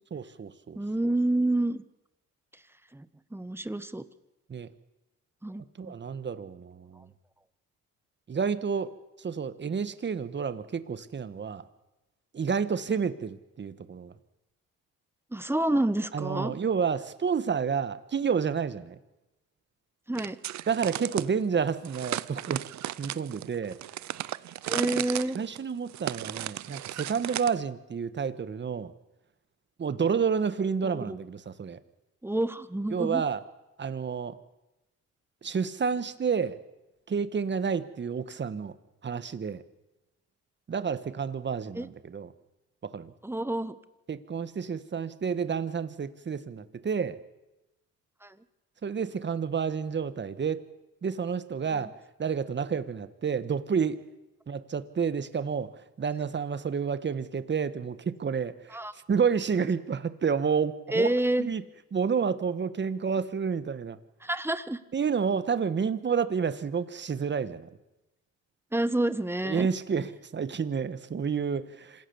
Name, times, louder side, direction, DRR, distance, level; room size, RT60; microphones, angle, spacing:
voice 1, 0.1-0.8 4.5-4.7 5.8-7.1 8.3-8.9 9.2-11.6 12.3-14.1 16.1-19.0 20.7-22.6 23.0-23.8 25.3-28.9 29.8-31.8 32.9-33.4 33.8-34.4 35.4-36.6 37.1-38.7 39.0-39.6 40.7-42.3 42.8-43.1 44.1-47.2 48.8-50.6 51.0-51.9 52.2-54.0 54.5-55.7 56.0-58.8 59.1-61.1 61.4-61.6 61.9-64.0 64.9-67.7 69.4-72.1, right 6 dB, 35° right, 13 dB, 1.5 m, -30 dB
voice 2, 0.7-1.8 2.9-4.0 5.4-5.9 15.3-16.5 20.1-20.4 24.7-25.4 30.8-31.2 32.2-33.2 41.7-41.9 43.2-43.8 48.2-48.4 51.7-51.9 58.7-58.9 60.9-61.5 64.2-64.8 68.7-69.7, right 1 dB, 10° right, 13 dB, 1.3 m, -28 dB
sound 1, 20.1-21.3 21.8-27.6, right 13 dB, 70° right, 0.8 m, -35 dB
26.5 x 16.5 x 7.2 m, 1.0 s
cardioid pair, 90°, 30 cm